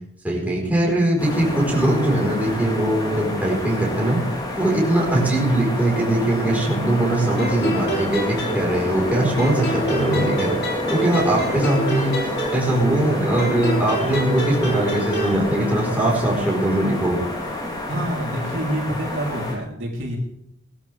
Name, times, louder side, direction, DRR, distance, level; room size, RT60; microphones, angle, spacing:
voice 1, 0.2-4.2 4.6-10.5 10.9-12.1 12.5-17.2, right 1 dB, 10° right, -4 dB, 4.4 m, -21 dB
sound 1, 1.2-19.6, left 2 dB, 20° left, 3.5 m, -29 dB
sound 2, 7.4-9.1 9.4-13.0 13.4-15.4, right 1 dB, 50° left, 3.3 m, -27 dB
voice 2, 17.9-20.2, right 1 dB, 65° right, -2 dB, 3.7 m, -27 dB
20.0 x 13.0 x 3.5 m, 0.73 s
head